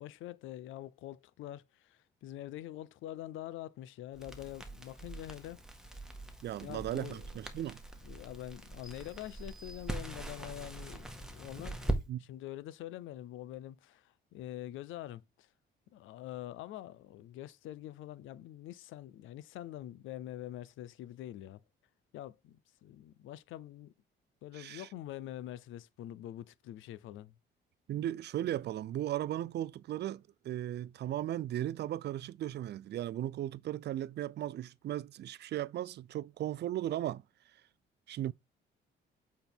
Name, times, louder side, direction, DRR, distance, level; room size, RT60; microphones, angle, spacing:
voice 1, 0.0-5.6 6.6-7.4 8.0-15.5 15.9-21.6 22.1-23.9 24.4-27.3, left 13 dB, 85° left, 0.6 m, -45 dB
Crackle, 4.1-12.0, right 1 dB, 5° right, 1.5 m, -41 dB
voice 2, 6.4-7.8 12.1-12.2 24.5-24.9 27.9-37.2 38.1-38.3, right 12 dB, 60° right, 0.4 m, -36 dB
sound 1, 8.8-10.5, right 1 dB, 20° left, 3.1 m, -59 dB
7.9 x 4.3 x 3.5 m
cardioid pair, 90°, 20 cm